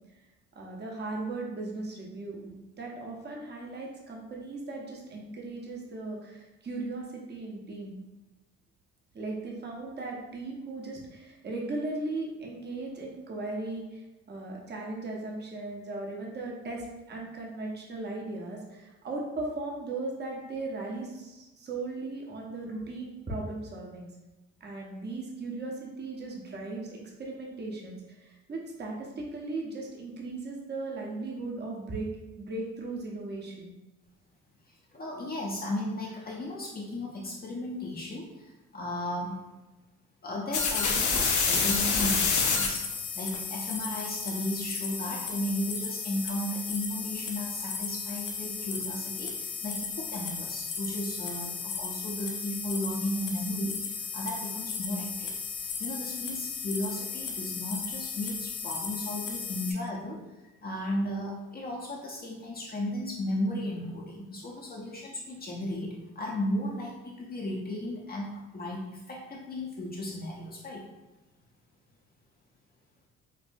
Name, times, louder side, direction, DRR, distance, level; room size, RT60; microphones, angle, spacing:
voice 1, 0.5-8.0 9.1-24.1 24.6-32.1 32.4-33.7, right 2 dB, 35° right, -1 dB, 0.8 m, -37 dB
voice 2, 34.7-39.5 40.2-42.9 43.1-70.9, left 1 dB, 30° left, -3 dB, 0.6 m, -35 dB
sound 1, 40.5-59.7, left 5 dB, 75° left, 0.8 m, -32 dB
5.3 x 2.1 x 2.5 m, 1.0 s
cardioid pair, 90°, 30 cm